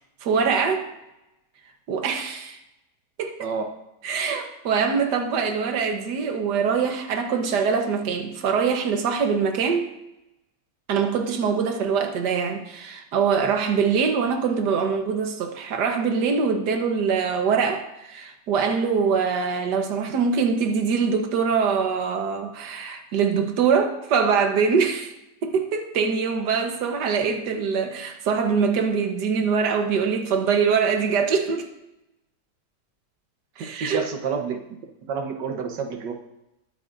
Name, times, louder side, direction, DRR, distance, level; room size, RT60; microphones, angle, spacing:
voice 1, 0.2-0.9 1.9-2.6 3.2-3.5 4.0-9.9 10.9-25.1 25.4-31.7 33.6-34.1, right 6 dB, 75° right, 1.7 m, -23 dB
voice 2, 33.6-34.6 35.0-36.1, right 5 dB, 90° right, 1.8 m, -29 dB
21.5 x 9.0 x 2.6 m
omnidirectional pair, 1.8 m